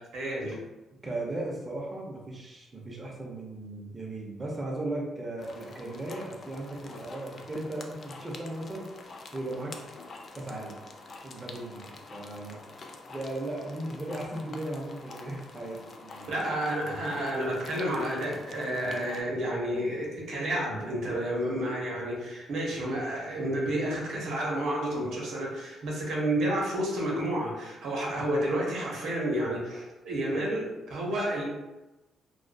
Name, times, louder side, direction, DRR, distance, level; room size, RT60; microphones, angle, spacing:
voice 1, 0.1-0.6 16.3-31.4, right 1 dB, 75° right, -4 dB, 0.8 m, -30 dB
voice 2, 1.0-9.8 10.3-10.8 11.2-12.6 13.1-16.6 30.3-30.5, right 1 dB, 25° right, -3 dB, 0.6 m, -37 dB
sound 1, 5.4-19.2, left 3 dB, 45° left, 0.3 m, -47 dB
2.5 x 2.3 x 2.2 m, 1.0 s
cardioid pair, 90°, 0 cm